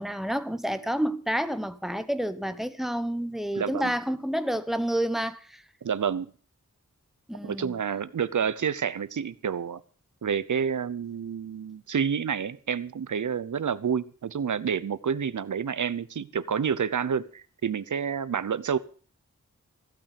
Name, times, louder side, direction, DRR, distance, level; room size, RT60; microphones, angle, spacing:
voice 1, 0.0-5.6 7.3-7.7, equal, ahead, 1.1 m, -29 dB
voice 2, 3.6-3.9 5.8-6.3 7.4-9.8 10.2-18.8, right 7 dB, 85° right, 0.8 m, -29 dB
15.0 x 9.0 x 6.7 m
wide cardioid pair, 100°, 30 cm